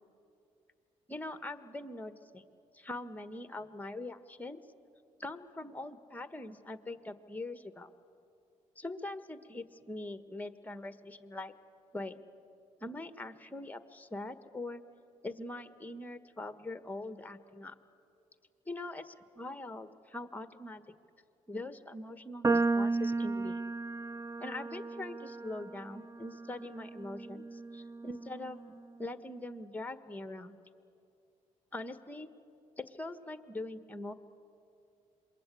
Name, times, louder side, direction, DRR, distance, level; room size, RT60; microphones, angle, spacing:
voice 1, 1.1-2.4 2.7-4.6 5.2-7.9 8.8-11.5 11.9-12.2 12.8-14.8 15.2-17.7 18.7-20.8 21.5-23.6 24.4-28.6 29.0-30.6 31.7-32.3 32.8-34.1, left 2 dB, 10° left, 10 dB, 1.4 m, -42 dB
sound 1, 22.4-28.8, right 3 dB, 20° right, 0.5 m, -34 dB
27.0 x 21.5 x 8.4 m, 2.6 s
supercardioid pair, 65°, 15 cm